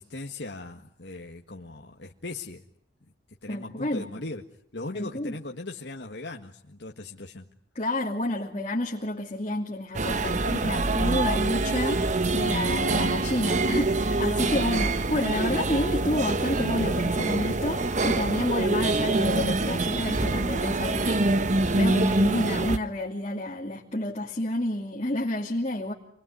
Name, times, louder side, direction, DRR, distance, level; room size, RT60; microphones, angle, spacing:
voice 1, 0.0-2.6 3.4-4.4 4.7-7.5 10.2-10.5, left 2 dB, 70° left, 1 dB, 1.8 m, -38 dB
voice 2, 3.5-4.1 4.9-5.4 7.7-21.2 21.7-25.9, left 1 dB, 35° left, -2 dB, 2.7 m, -30 dB
sound 1, 9.9-22.8, right 2 dB, 40° right, 1.1 m, -25 dB
28.0 x 21.5 x 9.7 m, 0.69 s
head